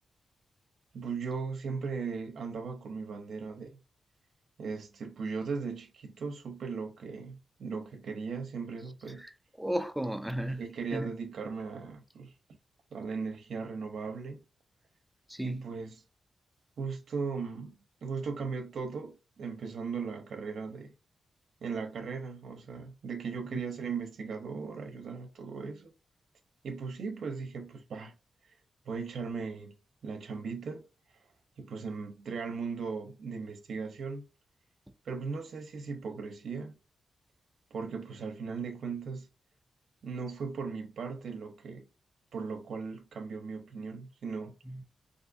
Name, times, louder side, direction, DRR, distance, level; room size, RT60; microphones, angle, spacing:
voice 1, 0.9-3.8 4.6-9.3 10.6-12.3 12.9-14.4 15.4-16.0 16.8-20.9 21.6-25.9 26.6-28.1 28.9-29.7 30.0-30.8 31.6-34.2 35.0-36.8 37.7-39.3 40.0-41.9 42.3-44.6, right 5 dB, 75° right, 0.6 m, -38 dB
voice 2, 9.6-10.6 10.9-11.1 15.3-15.6 23.5-23.6 44.7-44.8, right 1 dB, 5° right, 0.3 m, -33 dB
3.6 x 2.6 x 2.5 m
wide cardioid pair, 145°, 0 cm